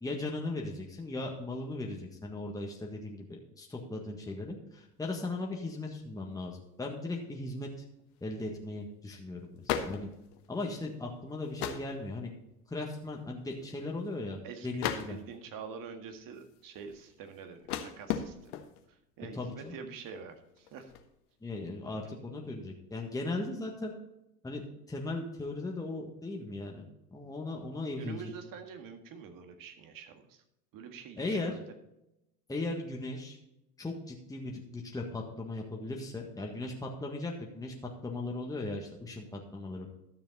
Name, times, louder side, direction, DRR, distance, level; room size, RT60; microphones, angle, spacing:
voice 1, 0.0-7.7 8.2-10.1 10.5-12.3 12.7-15.2 19.3-19.8 21.4-23.9 24.4-26.8 27.1-28.3 31.2-31.5 32.5-33.4 33.8-37.7 38.0-39.9, left 2 dB, 5° left, -1 dB, 1.6 m, -37 dB
sound 1, 5.5-6.0 6.4-6.5 7.9-8.2 8.6-8.7 8.9-9.2 9.5-10.9 11.4-12.1 12.5-12.8 13.1-13.2 13.4-14.2 14.8-15.5 16.1-18.9 19.5-19.8 20.1-21.1, left 9 dB, 65° left, 1.3 m, -38 dB
voice 2, 14.4-18.5 18.9-21.0 28.0-30.4 30.7-31.7, right 6 dB, 45° right, 7 dB, 1.8 m, -46 dB
12.5 x 6.9 x 4.0 m, 0.87 s
hypercardioid pair, 85°, 48 cm